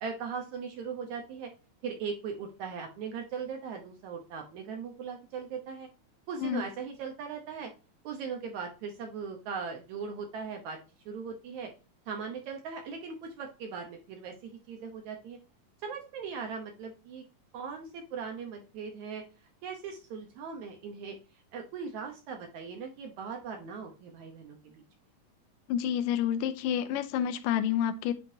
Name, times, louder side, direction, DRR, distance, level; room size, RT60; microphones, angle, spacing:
voice 1, 0.0-1.5 1.8-5.9 6.3-7.7 8.0-10.8 11.1-11.7 12.1-15.4 15.8-17.2 17.5-19.2 19.6-21.2 21.5-24.8, right 5 dB, 70° right, 2.1 m, -39 dB
voice 2, 25.7-28.1, left 9 dB, 85° left, 2.3 m, -29 dB
9.8 x 3.7 x 2.7 m
omnidirectional pair, 3.8 m